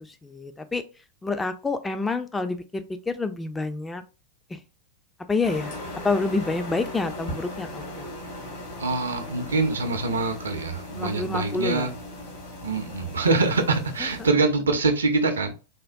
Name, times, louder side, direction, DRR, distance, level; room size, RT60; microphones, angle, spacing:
voice 1, 0.2-0.8 1.2-4.0 5.3-5.7 6.0-8.1 11.0-11.9, left 3 dB, 10° left, 0.3 m, -28 dB
sound 1, 5.4-14.3, left 1 dB, 55° left, 1.3 m, -38 dB
voice 2, 8.8-11.9 12.6-15.5, right 3 dB, 70° right, 0.5 m, -24 dB
3.4 x 2.0 x 2.5 m
figure-of-eight pair, 90°, 0 cm